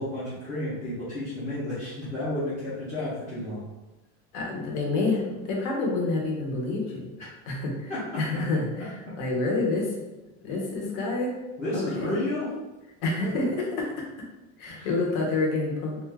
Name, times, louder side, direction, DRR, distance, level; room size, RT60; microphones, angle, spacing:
voice 1, 0.0-3.7 7.2-7.3 7.9-8.2 11.6-12.5 13.2-13.3 14.7-15.0, left 1 dB, 25° left, -12 dB, 0.7 m, -32 dB
voice 2, 4.3-7.1 7.5-10.0 10.4-11.3 11.7-12.2 13.0-14.0 14.6-16.0, left 3 dB, 60° left, -1 dB, 0.9 m, -28 dB
2.5 x 2.3 x 3.3 m, 1.1 s
cardioid pair, 175°, 30 cm